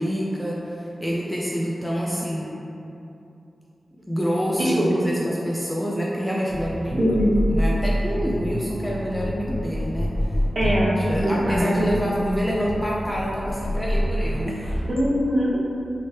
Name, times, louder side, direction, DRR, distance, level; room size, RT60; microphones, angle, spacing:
voice 1, 0.0-2.6 4.1-7.1 7.5-10.4 11.0-14.6, equal, 5° left, -5 dB, 0.3 m, -27 dB
voice 2, 4.6-5.0 7.0-7.4 10.5-10.9 11.2-11.9 14.9-15.6, equal, 40° right, -8 dB, 0.9 m, -22 dB
sound 1, 6.5-14.8, equal, 65° left, 0.6 m, -27 dB
3.1 x 2.8 x 3.2 m, 2.8 s
wide cardioid pair, 100°, 0 cm